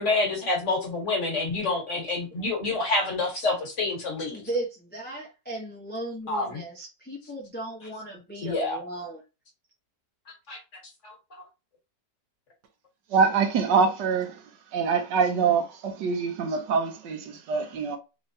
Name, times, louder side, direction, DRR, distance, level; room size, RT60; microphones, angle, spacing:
voice 1, 0.0-4.4 6.3-6.6 8.4-8.8 10.5-10.6 11.0-11.1, left 3 dB, 45° left, 1.3 m, -27 dB
voice 2, 4.3-9.2, right 2 dB, 15° left, 0.4 m, -36 dB
voice 3, 13.1-14.4 14.7-18.0, right 5 dB, 75° right, 1.3 m, -24 dB
3.6 x 3.2 x 2.7 m
omnidirectional pair, 2.0 m